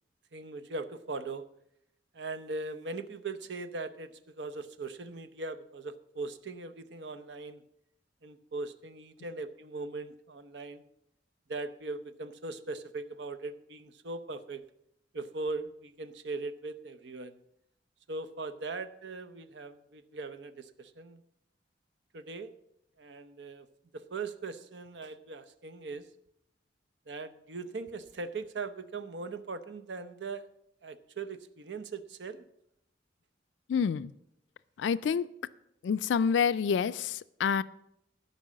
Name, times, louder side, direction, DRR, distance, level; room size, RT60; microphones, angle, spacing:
voice 1, 0.3-1.5 2.1-7.6 8.2-10.9 11.5-14.7 15.1-17.4 18.1-21.2 22.1-22.5 23.0-23.7 23.9-26.1 27.1-30.5 30.8-32.5, right 3 dB, 75° right, 11 dB, 0.7 m, -40 dB
voice 2, 33.7-34.1 34.8-35.3 35.8-37.6, left 6 dB, 90° left, 16 dB, 0.3 m, -28 dB
12.5 x 5.5 x 7.4 m, 0.79 s
head